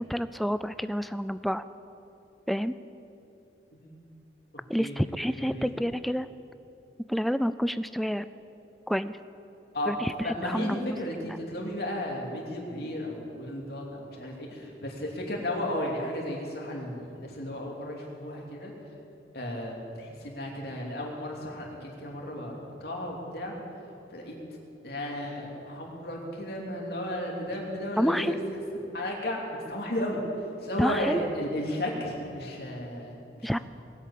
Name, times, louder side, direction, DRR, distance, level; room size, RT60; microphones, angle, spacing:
voice 1, 0.0-1.6 2.5-2.7 4.7-6.3 7.1-8.3 8.9-9.2 9.9-11.0 28.0-28.3 30.8-31.2 33.4-33.6, equal, ahead, 13 dB, 0.4 m, -28 dB
voice 2, 5.4-5.8 9.7-9.9 10.2-18.7 19.3-23.5 24.1-24.3 24.8-28.4 28.9-30.2 30.6-33.6, left 1 dB, 60° left, -1 dB, 3.0 m, -34 dB
20.0 x 8.6 x 8.5 m, 2.9 s
head